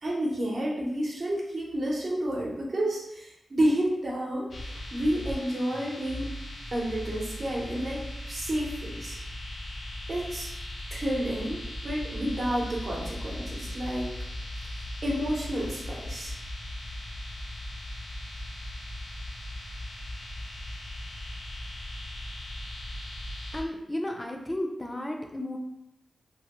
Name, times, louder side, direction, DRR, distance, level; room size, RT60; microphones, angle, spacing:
voice 1, 0.0-4.5 4.9-6.3 6.7-8.0 8.3-9.2 10.1-10.5 10.9-14.1 15.0-16.3, right 1 dB, 55° right, -4 dB, 0.8 m, -30 dB
sound 1, 4.5-23.6, left 1 dB, 70° left, 0.5 m, -38 dB
voice 2, 23.5-25.6, left 1 dB, 20° left, 2 dB, 0.5 m, -33 dB
3.0 x 2.2 x 2.9 m, 0.84 s
wide cardioid pair, 75°, 0 cm